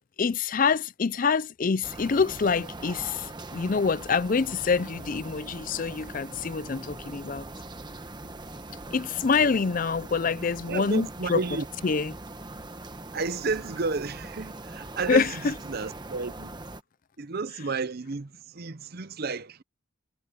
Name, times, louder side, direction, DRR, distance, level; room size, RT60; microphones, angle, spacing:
voice 1, 0.2-7.4 8.9-11.4 11.8-12.1 15.1-15.5, left 5 dB, 40° left, 0.5 m, -26 dB
sound 1, 1.8-16.8, right 2 dB, 20° right, 1.1 m, -41 dB
sound 2, 1.8-11.4, right 1 dB, 65° right, 2.1 m, -57 dB
voice 2, 10.7-11.7 13.1-16.5 17.2-19.6, right 4 dB, 50° right, 0.7 m, -32 dB
head